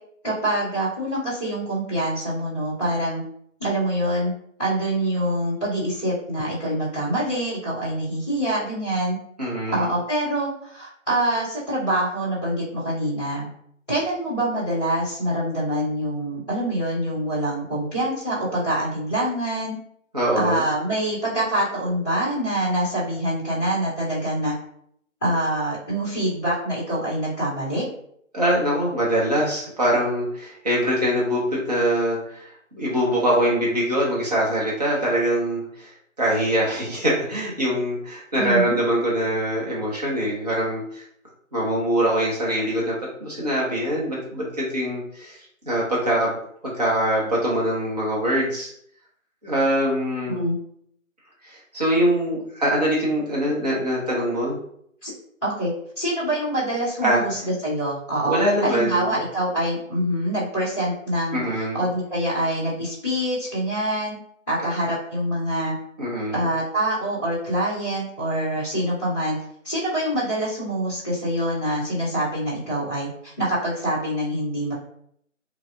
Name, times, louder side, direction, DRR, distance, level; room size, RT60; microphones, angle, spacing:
voice 1, 0.2-3.2 3.6-4.3 4.6-9.2 9.7-13.5 13.9-19.7 20.3-24.5 25.2-27.8 38.3-38.8 50.3-50.6 55.0-55.1 55.4-64.1 64.5-65.7 66.3-69.4 69.6-74.7, right 1 dB, 5° left, -20 dB, 1.3 m, -25 dB
voice 2, 9.4-9.9 20.1-20.6 28.3-32.5 32.7-35.9 36.2-41.0 41.5-45.4 45.6-46.4 46.6-48.7 49.4-50.4 51.4-54.6 57.0-57.2 58.2-59.1 61.3-61.8 66.0-66.4, equal, 30° right, -6 dB, 0.7 m, -23 dB
3.0 x 2.6 x 2.4 m, 0.68 s
figure-of-eight pair, 155°, 41 cm